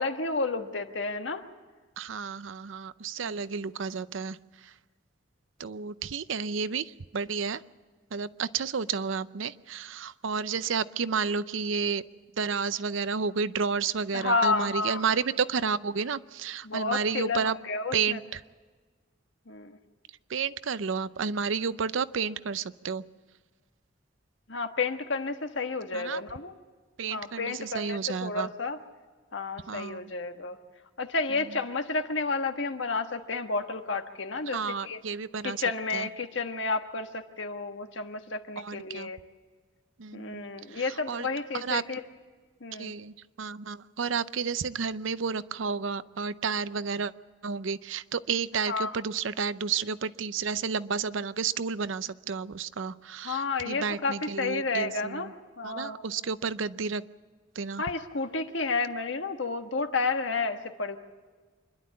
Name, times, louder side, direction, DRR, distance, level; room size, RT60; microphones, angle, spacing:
voice 1, 0.0-1.4 3.2-3.3 14.1-15.0 16.6-18.2 19.5-19.8 24.5-26.5 27.1-28.8 29.3-30.6 31.0-35.0 35.4-39.2 40.1-42.0 42.6-42.9 48.7-48.9 53.2-56.0 57.8-61.0, left 3 dB, 75° left, 6 dB, 1.4 m, -31 dB
voice 2, 2.0-4.7 5.6-7.6 8.1-12.0 12.4-17.6 17.9-18.4 20.3-23.0 25.9-26.2 27.0-28.5 29.7-30.1 31.3-31.6 34.5-35.6 35.9-36.1 38.6-39.1 40.0-41.3 41.5-41.8 42.8-47.1 47.4-55.3 55.6-57.1 57.5-57.8, right 5 dB, 85° right, 15 dB, 0.6 m, -31 dB
26.5 x 11.5 x 8.5 m, 1.4 s
head